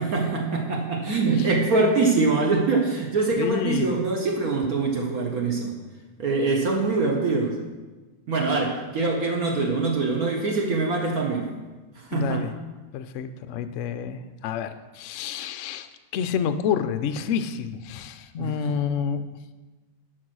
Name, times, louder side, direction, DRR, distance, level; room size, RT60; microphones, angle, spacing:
voice 1, 0.0-5.7 6.2-7.6 8.3-11.5 12.0-12.4 18.4-18.5, right 3 dB, 55° right, 0 dB, 1.5 m, -24 dB
voice 2, 3.4-4.0 12.1-12.5 12.9-19.2, left 7 dB, 80° left, 10 dB, 0.7 m, -29 dB
12.5 x 4.7 x 6.1 m, 1.2 s
omnidirectional pair, 2.0 m